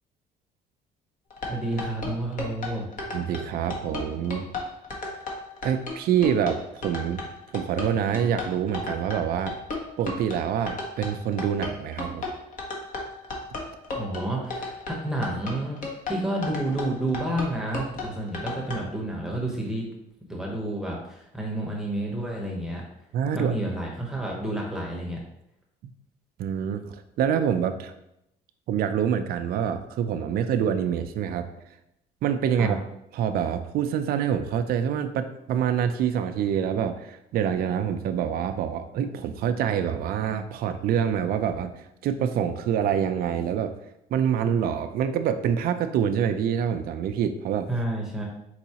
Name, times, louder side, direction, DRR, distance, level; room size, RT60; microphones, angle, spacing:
sound 1, 1.3-18.8, left 3 dB, 50° left, 1.1 m, -34 dB
voice 1, 1.5-2.8 13.9-15.8 16.1-19.9 20.3-22.8 23.3-25.2 32.6-32.8 47.7-48.2, right 1 dB, 5° right, -2 dB, 0.9 m, -30 dB
voice 2, 3.1-4.5 5.6-7.2 7.5-9.5 10.0-12.3 23.1-23.5 26.4-27.9 28.7-31.4 32.2-32.8 33.1-41.7 42.0-43.7 44.1-47.7, right 8 dB, 65° right, 8 dB, 0.4 m, -26 dB
4.6 x 4.0 x 2.9 m, 0.82 s
cardioid pair, 110°, 17 cm